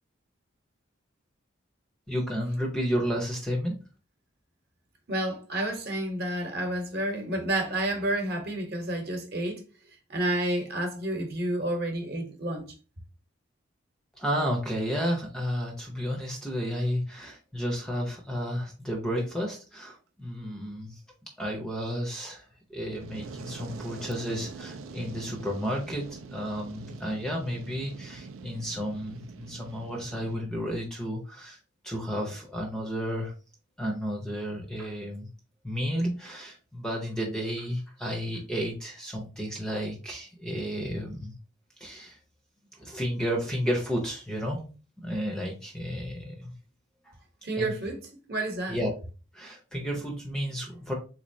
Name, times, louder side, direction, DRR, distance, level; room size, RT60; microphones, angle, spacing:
voice 1, 2.1-3.8 14.2-21.0 21.4-31.6 31.8-33.3 33.8-35.3 35.6-41.3 41.8-42.2 42.8-44.6 45.0-46.5 47.5-47.7 48.7-48.9 49.3-50.9, equal, 5° left, 0.5 m, -32 dB
voice 2, 5.1-9.6 10.1-12.7 47.4-48.0 48.3-48.8, right 1 dB, 50° right, 0.9 m, -30 dB
Fire, 22.7-30.4, right 4 dB, 85° right, 0.4 m, -44 dB
3.6 x 3.1 x 2.6 m
head